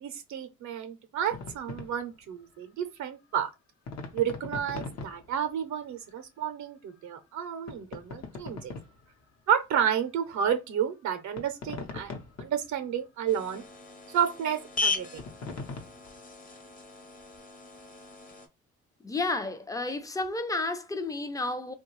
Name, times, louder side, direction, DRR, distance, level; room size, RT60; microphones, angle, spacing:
voice 1, 0.0-3.5 4.1-8.7 9.5-12.1 12.4-13.6 14.1-15.2, right 8 dB, 70° right, 0.6 m, -31 dB
sound 1, 1.3-1.9 3.9-5.3 7.7-9.0 11.4-12.6 15.2-16.1, left 4 dB, 60° left, 0.8 m, -40 dB
sound 2, 13.3-18.5, left 4 dB, 30° left, 0.8 m, -37 dB
voice 2, 19.0-21.7, left 2 dB, 10° left, 0.4 m, -31 dB
3.0 x 2.3 x 3.0 m
cardioid pair, 90°, 30 cm